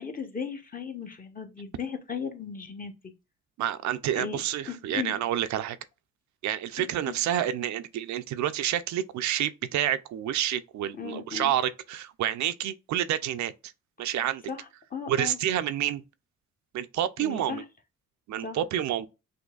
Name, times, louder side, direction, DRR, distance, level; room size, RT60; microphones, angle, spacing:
voice 1, 0.0-3.1 4.1-5.1 6.8-7.2 11.0-11.5 14.5-15.4 17.2-17.6 18.4-18.6, left 6 dB, 30° left, 0.9 m, -37 dB
voice 2, 3.6-5.8 6.4-13.5 14.0-14.4 15.1-16.0 16.7-17.6 18.3-19.1, right 11 dB, 70° right, 0.5 m, -29 dB
6.2 x 2.6 x 2.3 m
cardioid pair, 90°, 30 cm